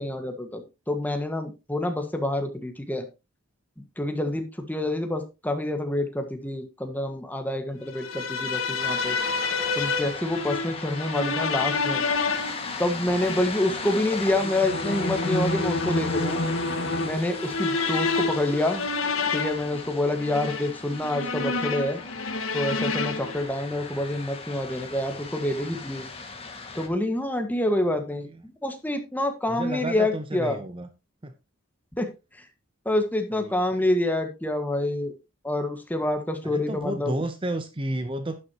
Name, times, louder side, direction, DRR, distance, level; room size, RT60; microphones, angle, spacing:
voice 1, 0.0-3.1 4.0-9.2 9.7-12.0 12.8-16.4 17.0-18.8 19.3-22.0 22.5-26.0 26.7-30.6 31.9-32.1 32.3-32.4 32.8-35.1 35.4-37.1, left 1 dB, 10° left, 5 dB, 1.6 m, -27 dB
sound 1, 7.9-23.4, left 3 dB, 80° left, 1.7 m, -29 dB
sound 2, 8.8-26.9, left 4 dB, 30° left, 1.9 m, -38 dB
voice 2, 29.5-30.9 31.2-31.3 33.3-33.9 36.4-38.4, right 1 dB, 25° right, 9 dB, 0.7 m, -32 dB
11.5 x 9.7 x 2.9 m, 0.27 s
head